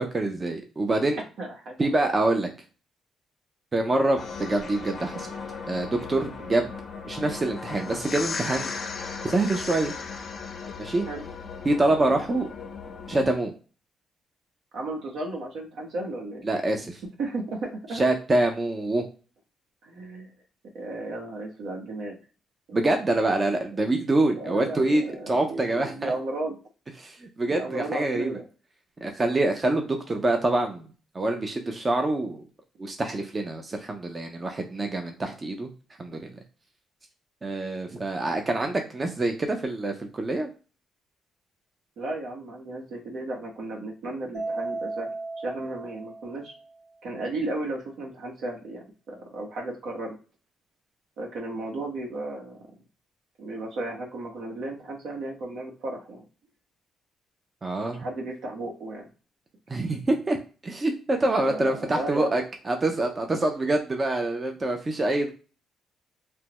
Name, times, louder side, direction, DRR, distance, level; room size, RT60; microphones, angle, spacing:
voice 1, 0.0-1.2 1.8-2.5 3.7-5.3 5.7-6.7 7.0-8.7 9.2-9.9 10.8-11.1 11.6-12.5 13.1-13.5 16.4-17.0 17.9-19.1 22.7-26.1 27.0-28.4 29.0-30.9 31.1-32.4 32.8-35.7 36.0-36.3 37.4-40.5 57.6-58.0 59.7-60.4 60.6-65.3, right 2 dB, 30° right, 4 dB, 0.6 m, -25 dB
voice 2, 1.4-2.2 11.1-11.2 14.7-16.4 17.2-18.0 19.8-20.3 20.7-22.2 24.3-26.6 27.5-28.4 42.0-45.1 45.4-46.5 47.0-50.2 51.2-52.6 53.4-56.2 58.0-59.1 61.4-62.4, right 2 dB, 75° right, 0 dB, 1.0 m, -34 dB
sound 1, 4.2-13.3, left 5 dB, 50° left, 0.6 m, -36 dB
Mallet percussion, 44.3-46.8, right 3 dB, 50° right, 1.5 m, -35 dB
3.3 x 2.1 x 2.9 m, 0.36 s
cardioid pair, 90°, 0 cm